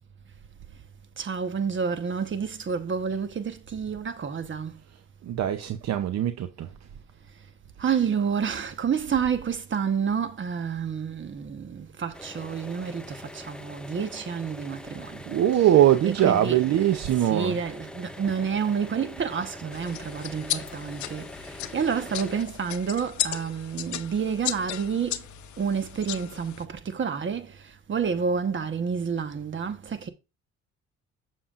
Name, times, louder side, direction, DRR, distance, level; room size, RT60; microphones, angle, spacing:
voice 1, 1.2-4.8 7.8-15.3 15.5-16.7 17.2-25.3 25.6-30.1, right 6 dB, 40° right, 1.1 m, -29 dB
voice 2, 5.2-6.7 15.3-17.6, right 11 dB, 60° right, 0.7 m, -22 dB
sound 1, 12.1-22.5, left 1 dB, 5° left, 0.6 m, -43 dB
sound 2, 19.7-26.6, left 12 dB, 70° left, 0.7 m, -35 dB
7.2 x 7.0 x 2.4 m
cardioid pair, 90°, 30 cm